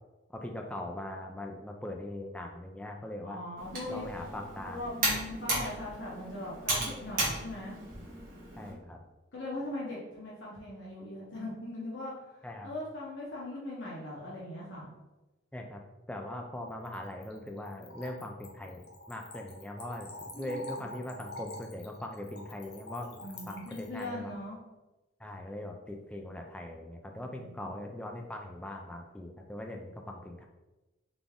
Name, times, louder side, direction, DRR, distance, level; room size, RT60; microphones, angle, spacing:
voice 1, 0.3-3.4 3.9-4.8 8.6-9.0 12.4-12.7 15.5-15.8 16.1-24.3 25.2-30.4, left 1 dB, 5° left, 2 dB, 0.3 m, -41 dB
voice 2, 3.2-4.3 4.7-7.7 9.3-14.9 20.3-20.9 23.2-24.6 27.1-27.8, left 1 dB, 80° left, -6 dB, 1.1 m, -40 dB
Computer keyboard, 3.6-8.7, right 2 dB, 45° right, 1.4 m, -35 dB
Splash splatter / Trickle dribble, 16.7-24.1, left 2 dB, 55° left, 0.8 m, -47 dB
4.0 x 3.4 x 3.5 m, 1.1 s
head